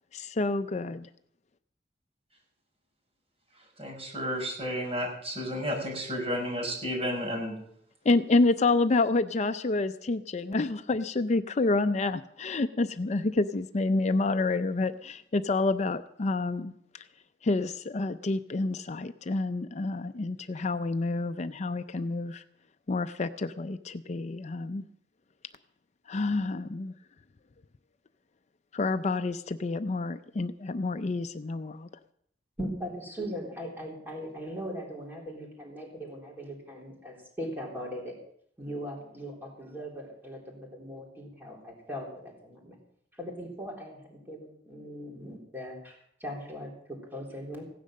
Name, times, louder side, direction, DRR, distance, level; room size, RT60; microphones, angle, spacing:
voice 1, 0.1-1.1 8.0-16.7 17.4-22.4 22.9-24.9 26.1-26.9 28.7-31.9, left 3 dB, 40° left, 10 dB, 0.5 m, -28 dB
voice 2, 3.8-7.6, equal, 35° right, 0 dB, 5.7 m, -32 dB
voice 3, 32.6-38.2 38.6-42.8 43.2-47.6, equal, 10° right, -2 dB, 3.6 m, -39 dB
16.5 x 10.5 x 6.4 m, 0.70 s
head